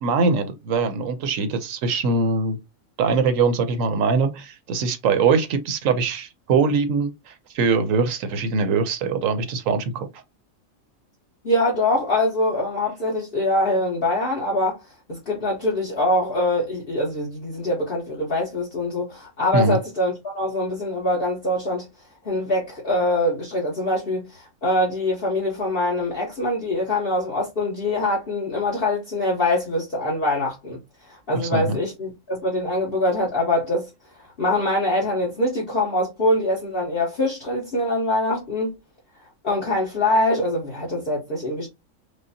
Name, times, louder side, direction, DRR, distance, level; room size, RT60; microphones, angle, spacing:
voice 1, 0.0-2.6 3.0-10.1 19.5-19.8 31.5-31.8, right 4 dB, 75° right, 1.0 m, -22 dB
voice 2, 11.4-14.8 15.1-21.9 22.2-33.9 34.2-38.7 39.4-41.7, left 1 dB, 45° left, 1.2 m, -24 dB
5.0 x 2.1 x 2.6 m
omnidirectional pair, 1.4 m